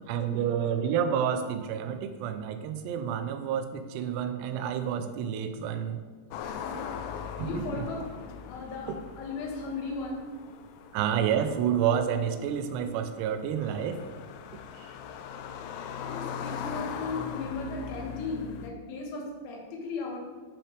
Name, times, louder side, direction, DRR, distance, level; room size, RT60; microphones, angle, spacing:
voice 1, 0.1-6.0 7.4-7.9 8.9-9.0 10.9-14.0 14.8-14.9, right 8 dB, 80° right, 9 dB, 2.6 m, -29 dB
sound 1, 6.3-18.7, left 7 dB, 90° left, 3.0 m, -40 dB
voice 2, 6.4-8.1 8.5-8.9 9.2-10.3 15.9-20.2, left 3 dB, 75° left, -1 dB, 3.6 m, -36 dB
12.0 x 5.8 x 3.3 m, 1.5 s
omnidirectional pair, 5.2 m